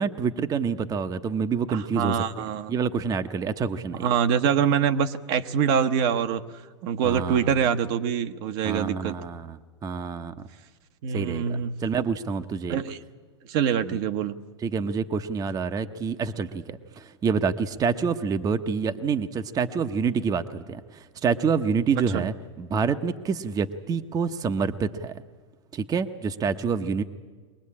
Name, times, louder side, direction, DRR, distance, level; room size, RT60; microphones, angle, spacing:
voice 1, 0.0-2.2 2.7-4.1 7.0-7.4 8.6-9.6 9.8-10.3 11.1-12.8 13.9-14.0 14.6-25.2 25.7-27.0, right 5 dB, 25° right, 9 dB, 0.9 m, -27 dB
voice 2, 1.7-2.7 4.0-9.2 11.0-11.8 12.7-13.0 13.5-14.4 22.1-22.3, right 8 dB, 55° right, 8 dB, 1.0 m, -25 dB
23.0 x 19.0 x 8.6 m, 1.4 s
hypercardioid pair, 105°, 15 cm